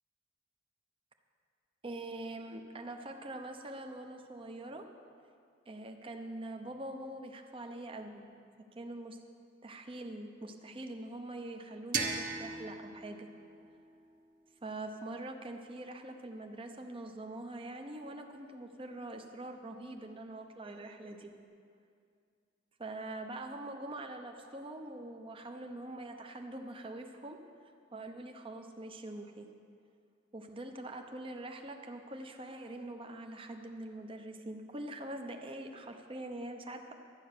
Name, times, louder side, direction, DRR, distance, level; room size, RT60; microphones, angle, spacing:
voice 1, 1.8-4.9 5.7-8.2 8.7-9.2 9.6-13.3 14.6-21.3 22.8-27.4 27.9-29.5 30.3-36.9, right 1 dB, 30° right, 4 dB, 0.8 m, -44 dB
sound 1, 11.9-14.8, right 4 dB, 45° right, 1.2 m, -39 dB
12.0 x 9.8 x 6.7 m, 2.3 s
head